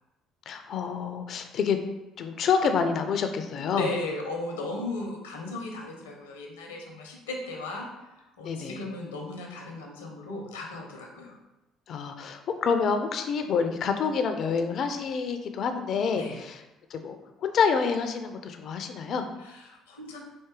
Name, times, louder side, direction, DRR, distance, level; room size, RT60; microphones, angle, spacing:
voice 1, 0.5-1.8 2.2-3.9 8.4-8.8 11.9-16.6 16.9-19.2, left 6 dB, 55° left, 7 dB, 0.4 m, -27 dB
voice 2, 3.5-7.9 8.2-11.3 16.1-16.4 19.4-20.2, left 2 dB, 85° left, 0 dB, 0.8 m, -36 dB
4.4 x 2.6 x 3.7 m, 1.0 s
hypercardioid pair, 55°, 0 cm